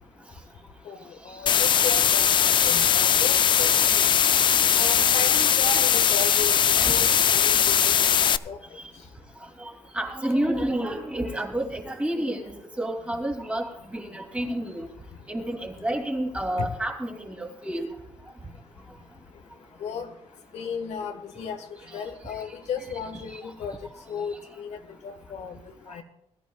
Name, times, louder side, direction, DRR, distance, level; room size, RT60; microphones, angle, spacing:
voice 1, 0.8-4.0 4.7-8.6 16.6-16.7 19.8-20.1 20.5-21.6 21.9-23.7 24.1-24.8 25.0-25.6 25.9-26.0, left 5 dB, 85° left, 6 dB, 1.7 m, -35 dB
sound 1, 1.5-8.4, left 8 dB, 45° left, 0.4 m, -20 dB
voice 2, 6.2-6.8 9.6-12.5 12.8-14.9 15.3-17.9 21.8-22.0 23.1-23.4, right 1 dB, 10° right, 1 dB, 2.9 m, -30 dB
21.5 x 13.5 x 2.4 m, 0.85 s
cardioid pair, 150°, 11 cm